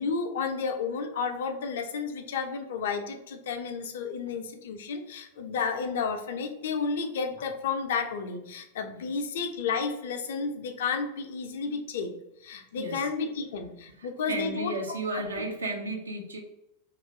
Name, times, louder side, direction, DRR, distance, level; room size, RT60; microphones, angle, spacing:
voice 1, 0.0-12.1 12.4-14.7 15.1-15.4, left 5 dB, 60° left, 5 dB, 0.4 m, -32 dB
voice 2, 12.7-13.1 14.0-16.4, right 2 dB, 75° right, 2 dB, 0.6 m, -34 dB
2.8 x 2.4 x 3.2 m, 0.87 s
figure-of-eight pair, 90°, 0 cm